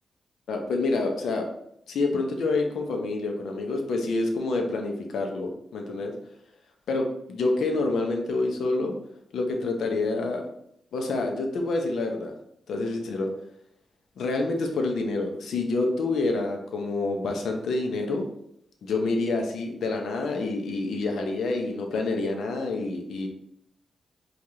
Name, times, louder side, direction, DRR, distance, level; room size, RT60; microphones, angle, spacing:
voice 1, 0.5-1.5 1.9-6.1 6.9-9.0 9.3-10.4 10.9-12.3 12.7-13.3 14.2-18.3 18.8-23.3, left 3 dB, 80° left, 3 dB, 0.6 m, -27 dB
4.7 x 2.4 x 2.8 m, 0.76 s
cardioid pair, 65°, 0 cm